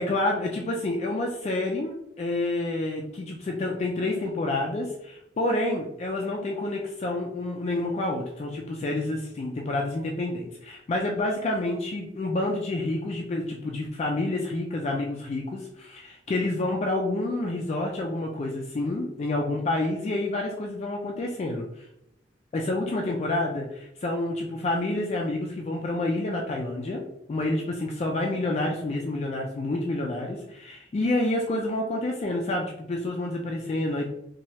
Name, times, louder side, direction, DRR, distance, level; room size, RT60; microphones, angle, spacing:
voice 1, 0.0-21.8 22.5-34.1, left 2 dB, 40° left, 0 dB, 0.3 m, -28 dB
3.1 x 2.2 x 2.7 m, 0.81 s
head